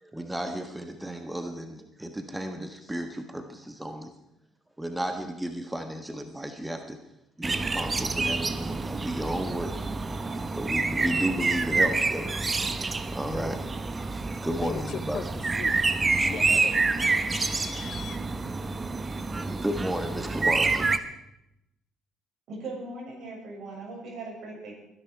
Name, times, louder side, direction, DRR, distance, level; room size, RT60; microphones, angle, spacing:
voice 1, 0.0-4.1 4.8-7.0 7.4-9.7 10.3-13.7 13.9-15.2 19.3-21.0, right 1 dB, 10° right, 6 dB, 1.4 m, -33 dB
sound 1, 7.4-21.0, right 3 dB, 30° right, 1.1 m, -28 dB
voice 2, 14.6-18.2, left 8 dB, 60° left, 14 dB, 0.8 m, -39 dB
voice 3, 22.5-24.8, right 2 dB, 60° right, -1 dB, 6.8 m, -39 dB
21.0 x 10.5 x 4.7 m, 0.86 s
hypercardioid pair, 60°, 0 cm